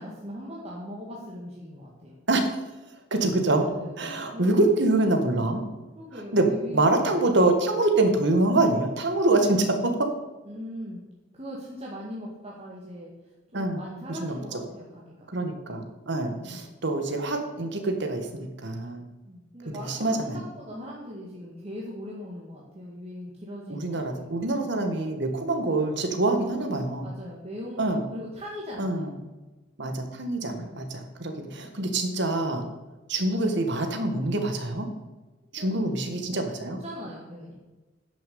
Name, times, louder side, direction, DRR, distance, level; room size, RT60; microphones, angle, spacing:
voice 1, 0.0-2.2 3.6-4.9 5.9-7.2 10.4-11.0 11.3-15.3 16.4-16.7 19.2-24.7 26.4-26.6 27.0-29.1 30.4-30.8 35.6-35.7 36.2-37.6, equal, 35° right, -4 dB, 1.8 m, -40 dB
voice 2, 3.1-3.6 4.0-5.6 6.3-10.1 13.5-13.8 14.1-14.4 15.3-19.1 19.9-20.4 23.7-27.1 27.8-28.0 28.8-29.1 29.8-32.6 33.1-34.9 35.5-36.8, right 2 dB, 65° right, 5 dB, 1.7 m, -25 dB
10.0 x 6.8 x 6.9 m, 1.2 s
head